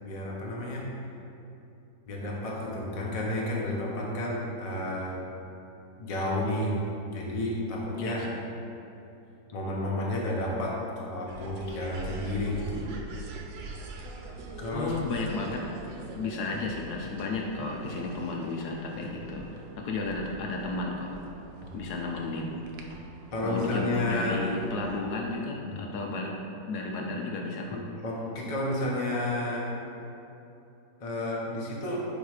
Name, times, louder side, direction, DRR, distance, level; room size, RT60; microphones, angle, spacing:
voice 1, 0.0-0.9 2.1-5.1 6.0-6.8 7.1-8.2 9.5-12.8 14.6-14.9 21.6-21.7 23.3-24.4 27.7-29.7 31.0-32.0, left 1 dB, 35° left, -4 dB, 0.6 m, -31 dB
voice 2, 7.9-8.4 14.7-15.8 16.2-21.1 21.7-22.5 23.4-26.3 26.7-27.8, left 3 dB, 70° left, 0 dB, 1.0 m, -33 dB
sound 1, 11.3-25.0, right 3 dB, 90° right, 1.3 m, -44 dB
7.2 x 3.1 x 4.8 m, 2.9 s
omnidirectional pair, 1.9 m